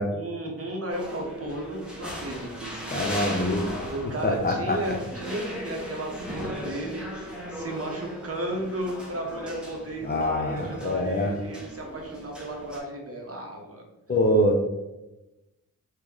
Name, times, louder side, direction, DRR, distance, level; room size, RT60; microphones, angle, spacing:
voice 1, 0.1-3.2 3.9-13.8, right 1 dB, 40° right, 0 dB, 1.0 m, -34 dB
sound 1, 0.9-12.8, equal, ahead, 1.3 m, -38 dB
voice 2, 2.9-3.6 4.2-5.0 10.0-11.3 14.1-14.6, left 1 dB, 25° left, 1 dB, 0.6 m, -24 dB
3.0 x 2.9 x 3.7 m, 1.0 s
cardioid pair, 55°, 36 cm